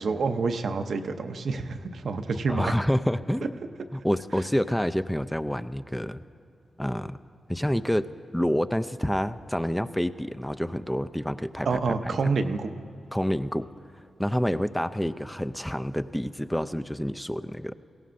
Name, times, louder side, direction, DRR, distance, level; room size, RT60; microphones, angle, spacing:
voice 1, 0.0-2.7 11.6-12.7, right 4 dB, 70° right, 7 dB, 0.6 m, -27 dB
voice 2, 2.5-3.6 3.9-6.2 6.8-7.2 7.5-8.1 8.3-11.7 12.2-12.3 13.1-13.7 14.2-17.7, equal, 5° left, 12 dB, 0.4 m, -28 dB
18.0 x 16.5 x 2.6 m, 2.6 s
cardioid pair, 70°, 0 cm